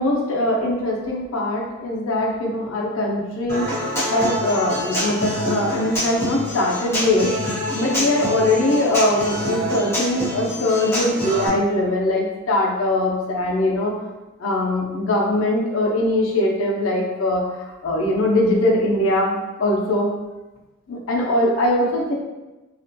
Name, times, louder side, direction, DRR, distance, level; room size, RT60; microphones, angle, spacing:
voice 1, 0.0-3.8 4.1-7.3 7.7-14.0 14.4-20.1 20.9-22.1, left 1 dB, 85° left, -2 dB, 0.5 m, -21 dB
Human voice / Acoustic guitar, 3.5-11.5, equal, 15° left, 0.7 m, -26 dB
2.4 x 2.1 x 2.6 m, 1.1 s
head